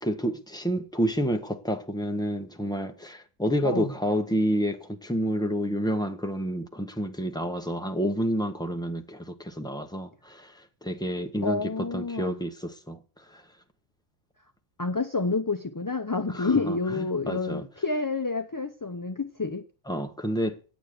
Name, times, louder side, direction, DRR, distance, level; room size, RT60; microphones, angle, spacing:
voice 1, 0.0-13.4 16.3-17.6 19.9-20.6, equal, 5° left, 0.8 m, -29 dB
voice 2, 11.4-12.4 14.8-19.6, left 3 dB, 30° left, 0.3 m, -28 dB
9.2 x 9.0 x 6.5 m
omnidirectional pair, 1.4 m